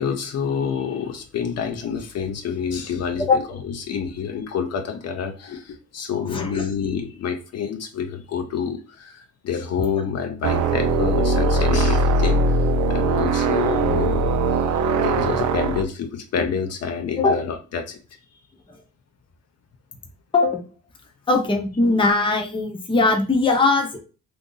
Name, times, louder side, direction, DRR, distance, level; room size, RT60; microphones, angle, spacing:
voice 1, 0.0-14.7 15.0-18.0, left 7 dB, 55° left, 6 dB, 0.6 m, -28 dB
voice 2, 6.3-6.6 17.2-17.4 20.3-20.6 21.3-24.0, left 3 dB, 15° left, 2 dB, 0.7 m, -20 dB
sound 1, 10.4-15.8, right 2 dB, 75° right, 0.5 m, -20 dB
2.7 x 2.6 x 3.8 m, 0.34 s
cardioid pair, 90°, 30 cm